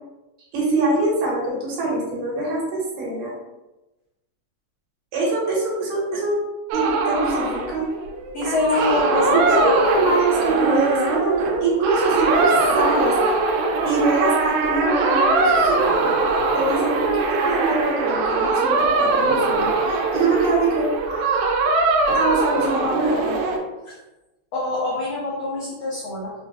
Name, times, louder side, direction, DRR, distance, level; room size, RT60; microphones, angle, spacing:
voice 1, 0.5-3.3 5.1-6.4 6.7-7.9 9.5-13.2 13.8-16.2 16.5-21.3 22.1-23.3, right 2 dB, 75° right, -5 dB, 2.6 m, -23 dB
sound 1, 6.7-23.6, right 3 dB, 90° right, 1.6 m, -21 dB
voice 2, 8.3-10.2 23.9-24.0 24.5-26.3, left 2 dB, 90° left, -6 dB, 1.4 m, -25 dB
5.7 x 2.2 x 2.7 m, 1.0 s
omnidirectional pair, 3.9 m